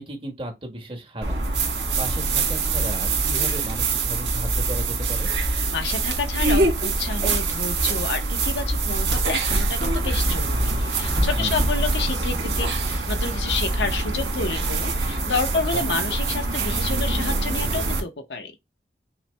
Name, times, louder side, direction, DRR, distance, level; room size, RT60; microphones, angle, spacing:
voice 1, 0.0-5.3 11.3-11.7 15.7-15.8, right 1 dB, 30° right, 1.3 m, -35 dB
sound 1, 1.2-18.0, right 3 dB, 90° right, 1.8 m, -24 dB
voice 2, 5.7-18.5, left 4 dB, 75° left, 0.8 m, -29 dB
5.7 x 2.1 x 3.2 m
head